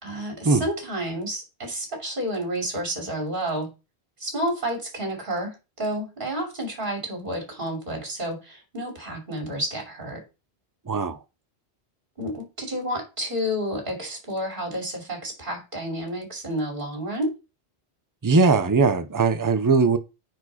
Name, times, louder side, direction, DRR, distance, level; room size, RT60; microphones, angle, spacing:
voice 1, 0.0-3.7 4.2-10.2 12.2-17.3, equal, 50° right, 3.2 m, -30 dB
voice 2, 10.9-11.2 18.2-20.0, right 4 dB, 20° right, 0.7 m, -20 dB
9.4 x 4.7 x 4.2 m
omnidirectional pair, 1.1 m